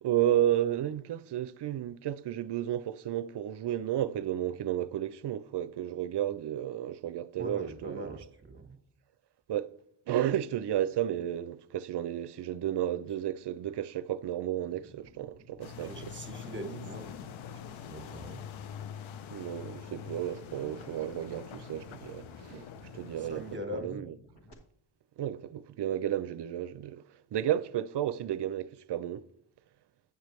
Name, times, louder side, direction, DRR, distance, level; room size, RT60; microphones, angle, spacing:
voice 1, 0.0-8.1 9.5-9.7 10.1-16.1 19.3-22.7 22.9-23.5 23.7-24.1 25.2-27.0 27.3-29.3, right 11 dB, 60° right, 0.6 m, -32 dB
voice 2, 7.4-8.8 15.8-18.4 23.2-24.1, equal, 25° right, 1.4 m, -42 dB
sound 1, 14.5-24.5, equal, 55° left, 1.9 m, -58 dB
sound 2, 15.6-23.6, left 8 dB, 80° left, 0.7 m, -45 dB
9.4 x 6.6 x 3.2 m
cardioid pair, 85°, 48 cm